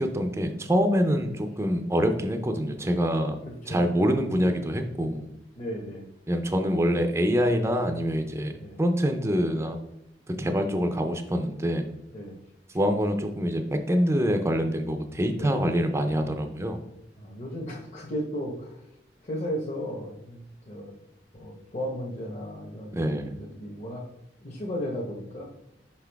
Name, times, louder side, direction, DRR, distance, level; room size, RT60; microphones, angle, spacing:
voice 1, 0.0-3.4 3.7-5.3 6.3-8.5 8.8-9.8 10.3-11.9 12.7-16.8 22.9-23.4, equal, 15° right, 6 dB, 0.5 m, -25 dB
voice 2, 3.4-3.8 5.5-6.1 8.6-8.8 10.5-10.6 12.1-12.4 15.3-16.2 17.2-18.9 19.2-20.9 21.4-24.0 24.4-25.4, equal, 40° left, -3 dB, 1.1 m, -35 dB
5.9 x 5.3 x 3.4 m, 0.86 s
head